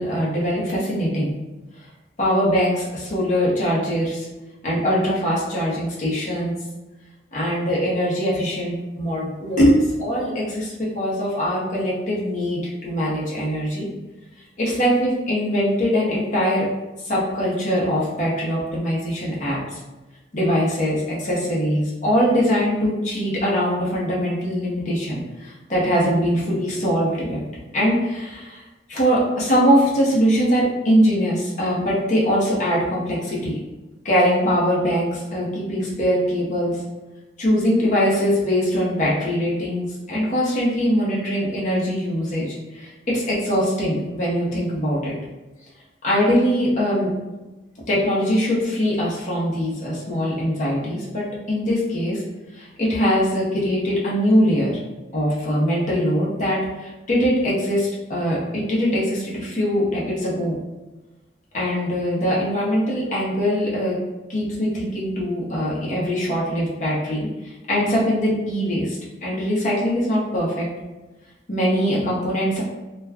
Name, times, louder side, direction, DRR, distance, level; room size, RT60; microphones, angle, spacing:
voice 1, 0.0-1.3 2.2-4.3 4.6-6.6 7.3-13.9 14.6-16.7 17.0-19.8 20.3-27.4 27.7-28.6 28.9-33.5 34.0-36.8 37.4-45.1 46.0-47.1 47.9-52.2 52.5-54.7 55.1-60.6 61.5-64.0 64.3-70.7 71.5-72.6, equal, 45° left, -6 dB, 0.8 m, -22 dB
2.4 x 2.2 x 3.4 m, 1.1 s
head